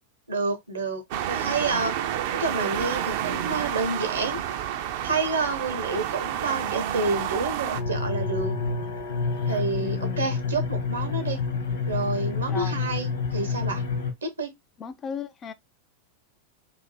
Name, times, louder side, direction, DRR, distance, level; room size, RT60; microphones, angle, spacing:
voice 1, 0.3-1.9 2.4-4.4 5.0-8.5 9.5-11.4 11.9-13.8 14.2-14.5, right 3 dB, 75° right, 0.9 m, -29 dB
sound 1, 1.1-7.8, right 10 dB, 50° right, 0.4 m, -29 dB
sound 2, 7.7-14.1, left 4 dB, 65° left, 1.0 m, -28 dB
voice 2, 9.8-10.3 12.5-12.8 14.8-15.5, left 7 dB, 25° left, 0.3 m, -36 dB
2.6 x 2.5 x 4.2 m
figure-of-eight pair, 90°, 0 cm